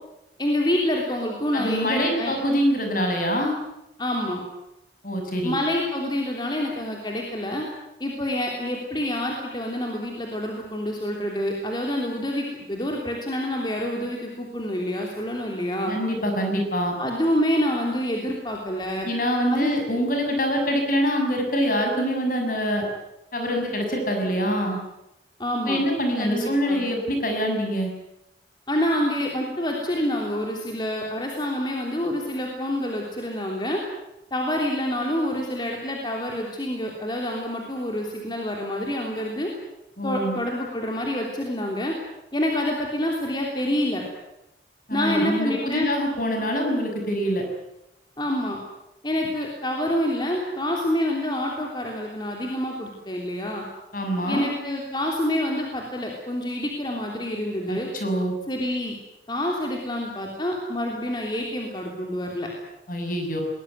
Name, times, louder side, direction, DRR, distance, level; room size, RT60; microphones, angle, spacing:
voice 1, 0.4-2.3 4.0-4.4 5.4-7.7 8.0-15.9 17.0-19.1 19.5-19.7 25.4-25.8 26.2-26.8 28.7-33.8 34.3-39.5 40.0-41.9 42.3-44.0 44.9-45.9 48.2-48.6 49.0-53.6 54.3-57.9 58.5-58.9 59.3-62.5, left 1 dB, 25° left, 0 dB, 3.4 m, -27 dB
voice 2, 1.5-3.6 5.0-5.6 15.8-17.0 19.0-22.9 23.3-24.8 25.6-27.9 40.0-40.4 44.9-47.4 53.9-54.5 57.7-58.3 62.9-63.4, equal, 50° left, 3 dB, 6.6 m, -25 dB
22.0 x 20.0 x 9.5 m, 0.89 s
head